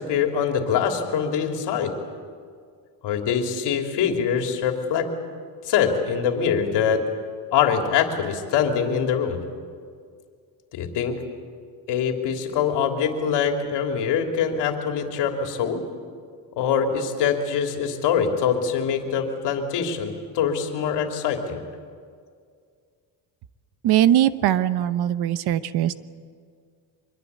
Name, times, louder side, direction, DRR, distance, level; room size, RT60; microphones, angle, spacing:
voice 1, 0.0-1.9 3.0-5.1 5.6-7.0 7.5-9.4 10.7-11.2 11.9-15.8 16.6-21.6, left 7 dB, 65° left, 3 dB, 3.2 m, -24 dB
voice 2, 23.8-25.9, right 12 dB, 60° right, 14 dB, 0.9 m, -20 dB
25.0 x 22.5 x 8.4 m, 2.1 s
cardioid pair, 140°, 44 cm